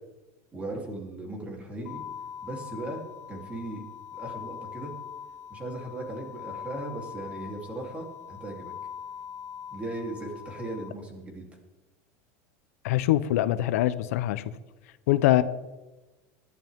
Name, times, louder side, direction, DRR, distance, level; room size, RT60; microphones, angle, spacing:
voice 1, 0.5-2.0 2.4-3.0 3.3-3.8 4.1-4.9 5.5-8.7 9.7-11.4, right 1 dB, 15° right, 1 dB, 3.4 m, -37 dB
sound 1, 1.9-10.9, left 8 dB, 35° left, 1.1 m, -42 dB
voice 2, 12.8-14.4 15.1-15.4, left 15 dB, 80° left, 13 dB, 0.9 m, -23 dB
19.5 x 12.5 x 3.7 m, 1.1 s
supercardioid pair, 155°, 8 cm